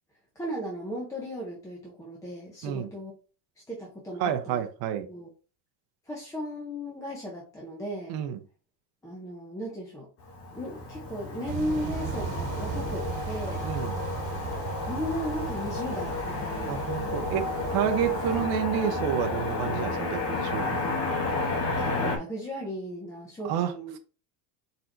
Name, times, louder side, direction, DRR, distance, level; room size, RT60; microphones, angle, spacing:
voice 1, 0.4-3.1 3.7-4.7 5.1-5.3 6.1-8.2 9.0-10.1 10.5-13.7 14.9-16.8 21.8-24.0, equal, 5° left, 0.6 m, -36 dB
voice 2, 4.2-5.1 8.1-8.4 13.6-13.9 16.7-20.9 23.4-23.7, right 9 dB, 50° right, 0.7 m, -29 dB
Motor vehicle (road), 10.2-22.2, left 3 dB, 30° left, 0.9 m, -31 dB
sound 1, 11.5-18.5, right 6 dB, 70° right, 1.9 m, -37 dB
4.4 x 4.1 x 2.6 m
cardioid pair, 175°, 48 cm